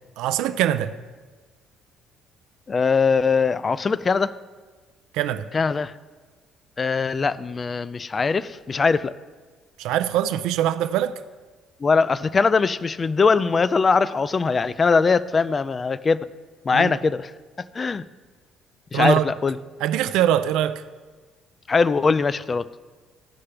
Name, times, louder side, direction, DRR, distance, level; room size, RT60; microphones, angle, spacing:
voice 1, 0.2-1.0 5.1-5.5 9.8-11.2 16.7-16.9 18.9-19.2 19.8-20.8, right 11 dB, 80° right, 0.4 m, -23 dB
voice 2, 2.7-4.3 5.5-5.9 6.8-9.1 11.8-16.3 16.7-17.3 17.8-18.0 18.9-19.6 21.7-22.6, left 4 dB, 30° left, 0.3 m, -21 dB
16.0 x 5.6 x 3.3 m
cardioid pair, 110°, 0 cm